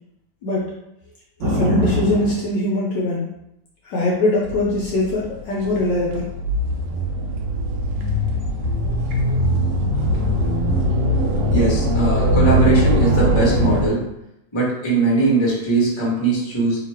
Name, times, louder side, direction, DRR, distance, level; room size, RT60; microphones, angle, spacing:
voice 1, 1.4-3.3 3.8-6.2, left 1 dB, 65° left, -4 dB, 1.2 m, -22 dB
sound 1, 1.4-2.4 4.4-13.9, equal, 70° right, 1.2 m, -21 dB
voice 2, 11.5-14.0 14.5-16.9, right 3 dB, 20° left, -5 dB, 0.9 m, -20 dB
3.2 x 2.9 x 4.2 m, 0.83 s
omnidirectional pair, 2.3 m